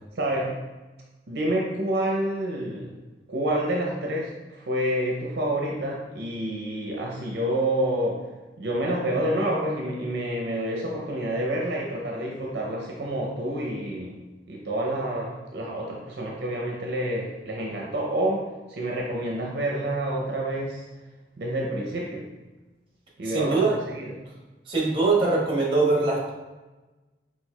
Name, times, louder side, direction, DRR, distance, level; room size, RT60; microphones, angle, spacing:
voice 1, 0.2-0.6 1.3-3.0 3.3-8.3 8.6-14.2 14.5-20.9 21.4-22.3 23.2-24.2, right 1 dB, 65° right, -2 dB, 0.6 m, -28 dB
voice 2, 23.2-23.7 24.7-26.3, right 3 dB, 30° right, -4 dB, 1.1 m, -22 dB
4.4 x 4.4 x 2.3 m, 1.2 s
head